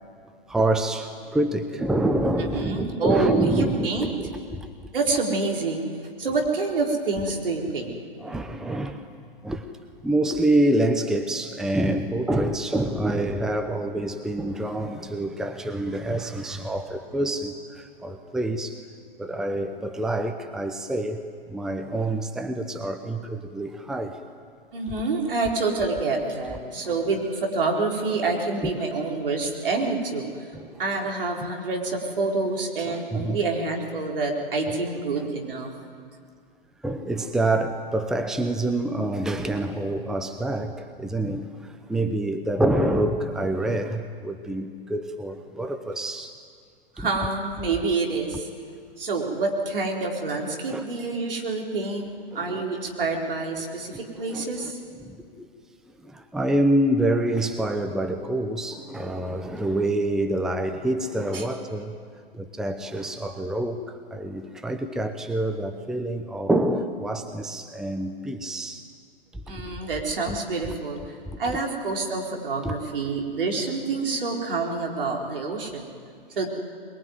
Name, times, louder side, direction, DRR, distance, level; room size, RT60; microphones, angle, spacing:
voice 1, 0.5-4.7 8.2-9.1 9.4-9.7 10.0-18.8 19.2-24.2 28.6-28.7 30.5-30.8 32.8-33.4 34.7-34.8 35.2-35.3 36.8-46.4 47.0-47.1 50.7-50.8 52.3-52.7 53.8-53.9 54.3-54.7 55.0-55.5 56.0-62.0 62.3-68.8 69.3-69.7 72.6-72.7, right 1 dB, ahead, 7 dB, 0.8 m, -27 dB
voice 2, 2.4-4.1 4.9-5.9 6.2-7.9 24.7-30.5 30.8-35.7 47.0-48.5 49.0-52.1 52.3-54.8 61.3-61.5 69.5-71.0 71.4-75.9 76.4-76.5, right 3 dB, 70° right, 0 dB, 4.4 m, -27 dB
22.5 x 22.0 x 9.5 m, 2.1 s
figure-of-eight pair, 120°, 29 cm